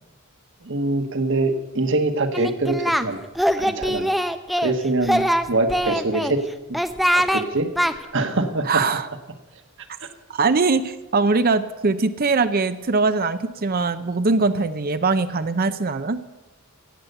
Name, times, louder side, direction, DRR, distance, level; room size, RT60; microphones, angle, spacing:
voice 1, 0.6-3.2 3.6-4.1 4.6-6.4 7.1-7.7 8.1-8.8, right 2 dB, 60° right, 7 dB, 1.4 m, -24 dB
Singing, 2.3-3.0 3.3-4.7 5.0-6.3 6.7-7.4 7.7-7.9, equal, ahead, 0.5 m, -22 dB
voice 2, 8.7-9.1 10.3-16.2, right 3 dB, 45° right, 11 dB, 0.6 m, -21 dB
16.0 x 8.2 x 8.0 m, 1.1 s
head